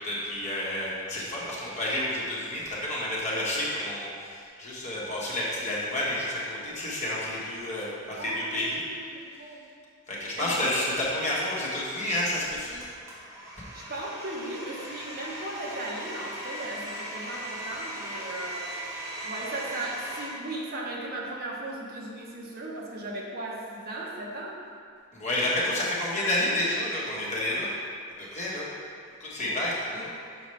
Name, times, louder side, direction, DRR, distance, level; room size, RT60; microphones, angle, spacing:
voice 1, 0.0-8.8 10.1-12.8 25.1-27.7 28.2-28.7 29.2-30.1, left 1 dB, 35° left, -6 dB, 1.2 m, -30 dB
voice 2, 8.2-9.6 10.4-11.0 13.7-24.6 29.4-30.0, right 1 dB, 50° right, -3 dB, 0.9 m, -37 dB
Domestic sounds home sounds, 12.8-20.3, right 1 dB, 15° right, 1.3 m, -38 dB
6.4 x 4.9 x 3.2 m, 2.2 s
head